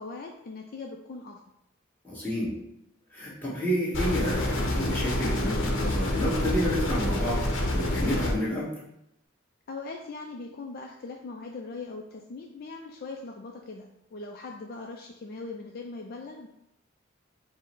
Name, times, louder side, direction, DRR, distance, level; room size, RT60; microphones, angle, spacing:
voice 1, 0.0-1.4 9.7-16.5, left 3 dB, 45° left, 1 dB, 0.4 m, -40 dB
voice 2, 2.0-2.6 3.1-8.7, equal, 10° left, -9 dB, 1.5 m, -30 dB
sound 1, 3.9-8.3, left 1 dB, 65° left, 0.8 m, -27 dB
4.5 x 2.1 x 4.5 m, 0.80 s
head